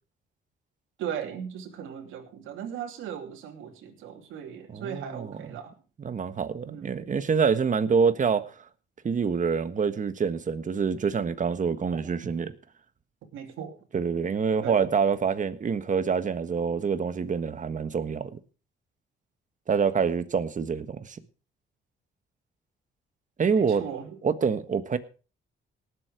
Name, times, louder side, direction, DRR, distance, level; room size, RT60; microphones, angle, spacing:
voice 1, 1.0-5.7 6.6-7.1 11.9-12.0 13.3-13.7 14.6-14.9 15.3-15.4 23.6-24.2, right 8 dB, 90° right, 2.9 m, -38 dB
voice 2, 4.7-5.3 6.0-8.4 9.0-12.5 13.9-18.4 19.7-21.2 23.4-23.8 24.2-25.0, right 6 dB, 40° right, 1.5 m, -26 dB
18.5 x 8.0 x 4.9 m
cardioid pair, 90°, 20 cm